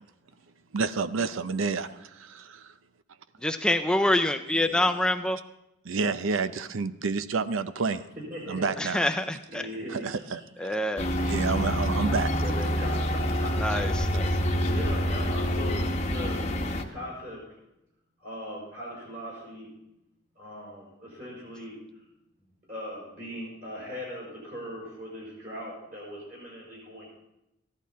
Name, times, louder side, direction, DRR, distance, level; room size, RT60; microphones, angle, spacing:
voice 1, 0.7-2.7 5.8-8.0 8.5-9.0 9.9-10.4 11.3-12.3, right 4 dB, 90° right, 13 dB, 0.6 m, -29 dB
voice 2, 3.4-5.4 8.8-9.6 10.6-11.1 13.6-13.9, left 1 dB, 5° left, 8 dB, 0.4 m, -25 dB
voice 3, 4.5-5.0 8.3-9.2 9.5-10.7 11.3-11.4 12.4-13.8 14.4-16.5 16.9-17.4 18.2-19.7 20.4-21.8 22.7-27.1, equal, 45° right, -5 dB, 5.7 m, -40 dB
sound 1, 11.0-16.8, equal, 35° left, 1.0 m, -27 dB
14.5 x 11.5 x 4.2 m, 0.88 s
head